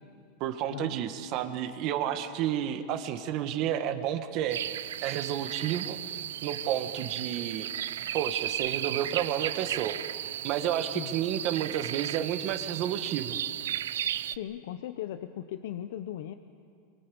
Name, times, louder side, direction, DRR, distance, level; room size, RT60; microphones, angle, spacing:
voice 1, 0.4-6.0 6.4-7.7 8.1-10.0 10.4-13.4, right 10 dB, 50° right, 8 dB, 1.7 m, -31 dB
sound 1, 4.5-14.4, right 11 dB, 85° right, 0.5 m, -35 dB
voice 2, 14.3-16.3, left 11 dB, 70° left, 9 dB, 0.9 m, -37 dB
24.5 x 24.0 x 7.1 m, 2.3 s
supercardioid pair, 135°, 0 cm